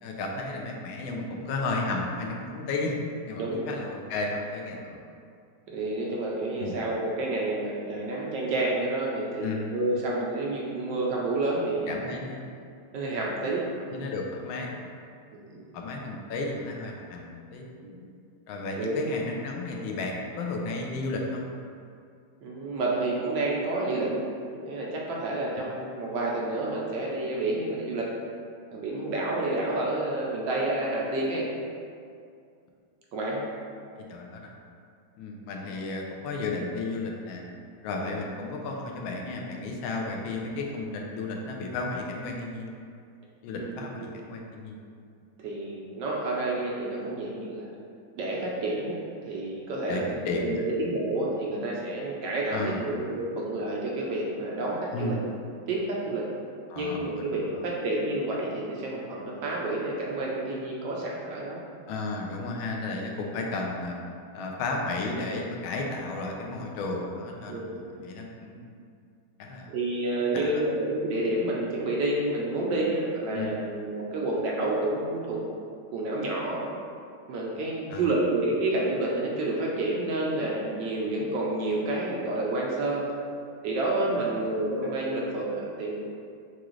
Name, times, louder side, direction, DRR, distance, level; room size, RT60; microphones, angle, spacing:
voice 1, 0.0-3.0 3.2-5.0 6.6-6.8 9.4-9.7 11.9-12.5 13.9-14.7 15.7-17.6 18.5-21.5 34.1-34.5 35.2-37.4 37.8-42.7 43.4-44.8 49.9-50.6 52.5-52.8 54.9-55.2 56.7-57.6 61.9-64.0 64.3-68.7 69.4-69.7 70.3-70.5 73.3-73.5 77.9-78.0, left 3 dB, 80° left, 0 dB, 1.4 m, -33 dB
voice 2, 3.4-3.7 5.7-12.3 12.9-14.0 15.3-15.6 17.8-18.0 18.8-19.0 22.4-24.2 24.5-28.1 28.7-31.4 33.1-33.4 38.0-38.1 43.5-44.1 45.4-47.7 48.2-55.2 55.7-56.3 56.8-61.6 67.5-67.8 69.7-75.4 75.9-76.6 77.3-83.1 83.6-86.0, right 2 dB, 70° right, -3 dB, 1.1 m, -29 dB
6.0 x 2.4 x 3.1 m, 2.4 s
omnidirectional pair, 2.2 m